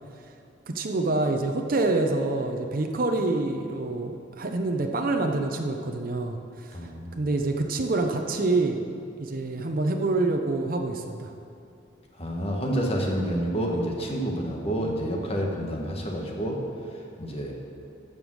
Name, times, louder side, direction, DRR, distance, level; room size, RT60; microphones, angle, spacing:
voice 1, 0.7-6.4 6.6-6.7 7.2-8.8 9.2-11.3, right 2 dB, 50° right, 3 dB, 0.7 m, -26 dB
voice 2, 6.7-7.2 12.1-16.6 17.2-17.5, equal, 35° left, 0 dB, 1.4 m, -28 dB
13.5 x 5.3 x 6.4 m, 2.5 s
head